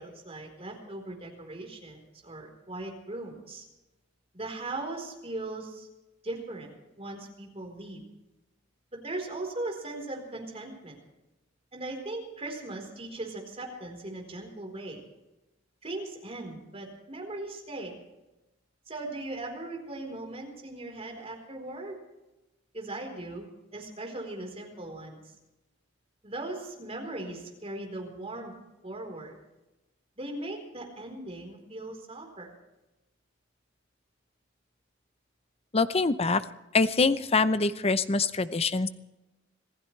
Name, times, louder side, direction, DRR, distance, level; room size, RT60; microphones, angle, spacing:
voice 1, 0.0-3.6 4.3-5.9 6.2-8.0 8.9-11.0 11.7-15.0 15.8-18.0 18.9-22.0 22.7-25.3 26.2-28.5 28.8-29.3 30.2-32.5, right 2 dB, 30° right, 1 dB, 4.2 m, -39 dB
voice 2, 35.7-36.4 36.7-38.9, left 4 dB, 30° left, 12 dB, 0.7 m, -24 dB
26.5 x 16.0 x 3.3 m, 0.99 s
head